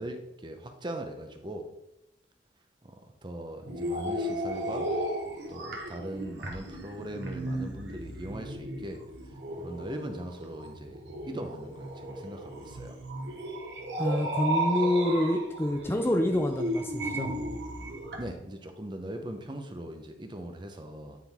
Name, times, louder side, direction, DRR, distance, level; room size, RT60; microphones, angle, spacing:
voice 1, 0.0-1.7 2.8-4.9 5.5-9.0 9.3-13.0 18.2-21.2, right 1 dB, 25° right, 5 dB, 0.8 m, -40 dB
sound 1, 3.6-18.2, right 1 dB, 90° right, 1.2 m, -35 dB
voice 2, 14.0-17.4, left 1 dB, 15° left, 4 dB, 0.4 m, -27 dB
9.6 x 3.9 x 3.5 m, 0.87 s
head